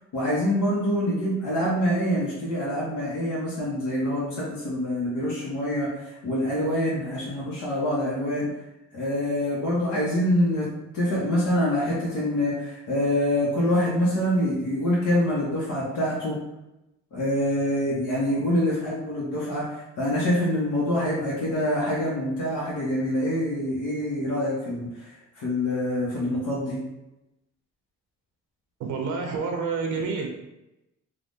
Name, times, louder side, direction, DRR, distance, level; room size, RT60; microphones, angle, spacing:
voice 1, 0.1-8.5 8.9-10.7 10.9-16.4 17.1-24.9 25.4-26.8, left 1 dB, 75° left, -7 dB, 1.0 m, -25 dB
voice 2, 28.8-30.3, right 4 dB, 80° right, 3 dB, 0.5 m, -28 dB
3.3 x 2.4 x 2.6 m, 0.93 s
cardioid pair, 90°, 30 cm